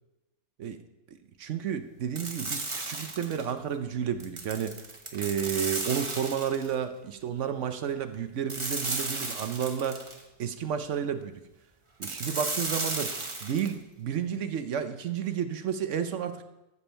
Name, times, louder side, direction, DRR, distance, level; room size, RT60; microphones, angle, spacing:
voice 1, 1.1-4.8 5.1-10.0 10.4-11.3 12.0-13.1 13.4-16.4, right 8 dB, 65° right, 10 dB, 0.9 m, -31 dB
sound 1, 2.1-3.5 4.2-6.7 8.5-10.2 12.0-13.7, right 2 dB, 25° right, 1.0 m, -34 dB
13.0 x 7.1 x 4.4 m, 0.96 s
omnidirectional pair, 1.5 m